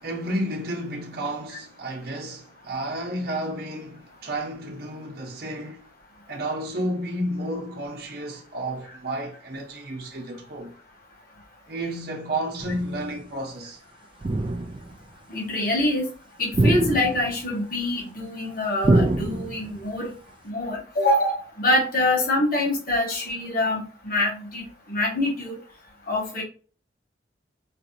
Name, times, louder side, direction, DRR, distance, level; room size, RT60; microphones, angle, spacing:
voice 1, 0.0-5.9 6.3-10.7 11.7-13.8, right 1 dB, 55° right, 0.8 m, -31 dB
sound 1, 12.6-13.0 14.2-15.0 16.5-17.5 18.8-19.8, right 2 dB, 30° right, 0.3 m, -24 dB
voice 2, 15.3-16.1 16.4-20.1 20.4-25.6 26.1-26.4, left 1 dB, 50° left, 1.5 m, -25 dB
4.2 x 2.6 x 2.6 m
head